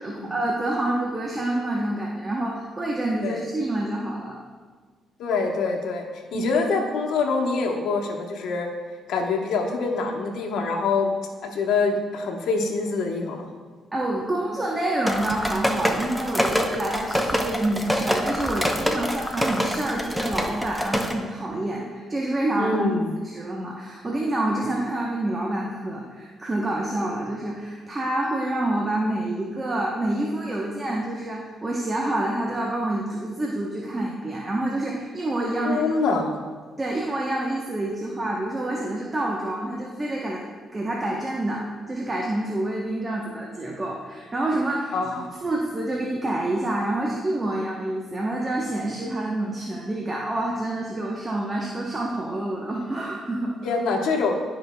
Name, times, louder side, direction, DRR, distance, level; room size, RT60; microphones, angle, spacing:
voice 1, 0.0-4.4 6.3-6.5 13.9-22.9 23.2-35.9 36.8-40.4 40.7-44.9 45.4-53.5, right 1 dB, 25° right, -2 dB, 0.9 m, -27 dB
voice 2, 5.2-6.0 6.3-8.7 9.1-11.1 11.4-13.5 22.6-23.1 35.6-36.3 44.9-45.3 53.6-54.3, left 4 dB, 80° left, 1 dB, 1.0 m, -25 dB
sound 1, 15.1-21.1, equal, ahead, 0.7 m, -26 dB
12.0 x 5.2 x 2.3 m, 1.5 s
cardioid pair, 90°, 0 cm